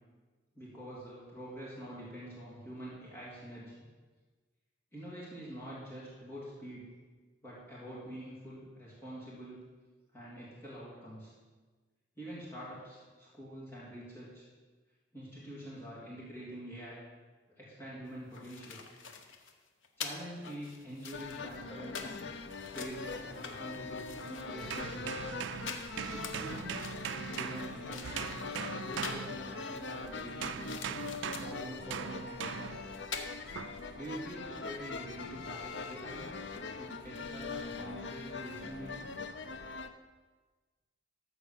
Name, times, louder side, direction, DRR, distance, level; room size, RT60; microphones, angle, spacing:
voice 1, 0.5-3.9 4.9-6.9 7.4-9.6 10.1-11.3 12.2-14.4 15.1-17.0 17.6-18.8 20.0-22.2 22.7-25.2 26.1-26.9 27.3-28.4 28.8-30.8 31.4-32.7 33.9-36.2 36.8-39.1, equal, 15° left, -9 dB, 3.1 m, -46 dB
sound 1, 18.1-29.3 29.8-31.7 32.6-32.7 32.9-33.3, left 5 dB, 85° left, 1.0 m, -46 dB
sound 2, 21.1-39.9, left 4 dB, 65° left, 0.6 m, -42 dB
sound 3, 24.6-29.9 30.4-32.9 33.6-33.8, right 7 dB, 70° right, 0.4 m, -41 dB
13.0 x 4.8 x 7.1 m, 1.3 s
head